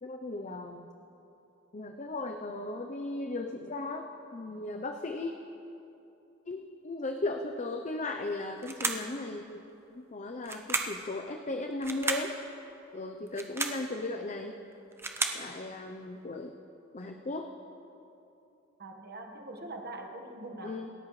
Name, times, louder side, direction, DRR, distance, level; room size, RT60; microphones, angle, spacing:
voice 1, 0.0-0.9 1.7-5.3 6.5-9.6 9.9-12.4 12.9-14.5 15.3-16.5 16.9-17.5 20.6-20.9, left 2 dB, 35° left, 4 dB, 0.7 m, -36 dB
sound 1, 8.6-9.1 10.4-11.0 11.8-12.3 13.3-13.8 14.7-15.5, right 3 dB, 10° right, 0.8 m, -33 dB
voice 2, 18.8-20.8, right 2 dB, 50° right, 4 dB, 1.5 m, -43 dB
28.0 x 13.5 x 3.2 m, 2.8 s
head